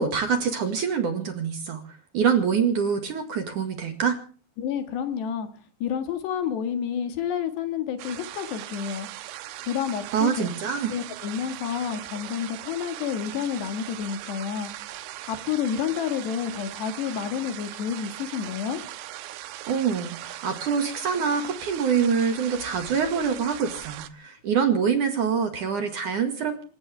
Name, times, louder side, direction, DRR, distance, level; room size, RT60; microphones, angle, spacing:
voice 1, 0.0-1.8 2.1-4.2 10.1-10.9 19.7-26.6, right 6 dB, 55° right, 7 dB, 2.9 m, -25 dB
voice 2, 4.6-5.5 5.8-9.1 9.7-10.5 10.9-14.7 15.3-18.8, left 8 dB, 70° left, 8 dB, 3.9 m, -29 dB
sound 1, 8.0-24.1, right 14 dB, 90° right, 3.4 m, -39 dB
26.5 x 15.5 x 3.4 m, 0.40 s
omnidirectional pair, 5.2 m